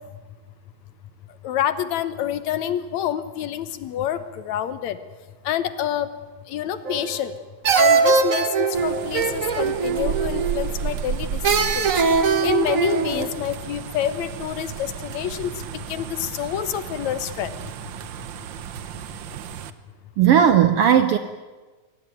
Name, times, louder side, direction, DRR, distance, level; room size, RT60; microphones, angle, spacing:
voice 1, 1.4-5.0 5.4-6.1 6.5-7.3 7.8-12.0 12.4-17.5, left 10 dB, 70° left, 13 dB, 2.2 m, -27 dB
sound 1, 6.9-7.3 7.6-10.7 11.4-13.3, right 5 dB, 50° right, 0.9 m, -21 dB
sound 2, 8.7-19.7, right 8 dB, 90° right, 1.0 m, -33 dB
voice 2, 20.2-21.2, right 9 dB, 70° right, 10 dB, 1.4 m, -16 dB
23.0 x 18.0 x 9.3 m, 1.3 s
omnidirectional pair, 3.5 m